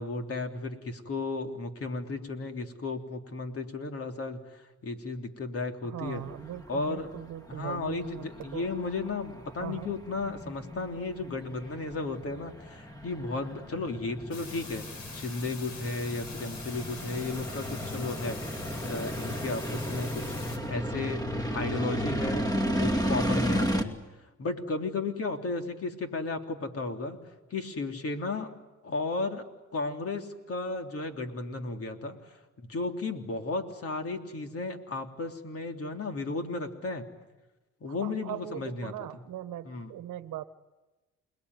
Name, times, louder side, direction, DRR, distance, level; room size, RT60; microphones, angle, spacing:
voice 1, 0.0-6.3 6.7-7.1 7.5-14.8 15.1-18.4 18.7-22.4 22.8-23.9 24.4-27.2 27.5-28.5 28.8-32.4 32.7-37.0 37.8-39.2 39.6-39.9, left 3 dB, 50° left, 4 dB, 3.4 m, -34 dB
voice 2, 5.9-8.2 8.5-8.7 9.6-9.9 38.0-40.4, right 12 dB, 80° right, 12 dB, 1.2 m, -39 dB
sound 1, 6.0-23.8, equal, 10° left, 2.6 m, -34 dB
sound 2, 14.3-20.6, left 4 dB, 70° left, 5.5 m, -44 dB
28.5 x 20.5 x 9.7 m, 1.1 s
cardioid pair, 90°, 30 cm